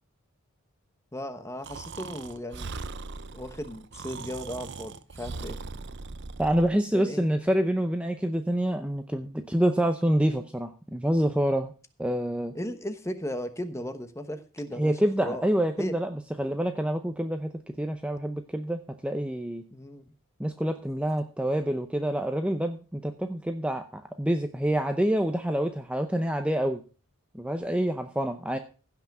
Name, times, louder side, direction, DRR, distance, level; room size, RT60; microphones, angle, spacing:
voice 1, 1.1-2.7 3.3-5.6 6.9-7.3 12.5-15.4 15.8-16.0 19.7-20.0, equal, 15° left, 9 dB, 1.1 m, -36 dB
Breathing, 1.6-6.7, right 4 dB, 55° right, 0.7 m, -39 dB
voice 2, 6.4-11.7 12.0-12.5 14.8-17.5 17.8-19.6 20.4-26.8 27.3-28.6, right 1 dB, 5° right, 6 dB, 0.6 m, -27 dB
16.0 x 5.9 x 6.0 m, 0.36 s
head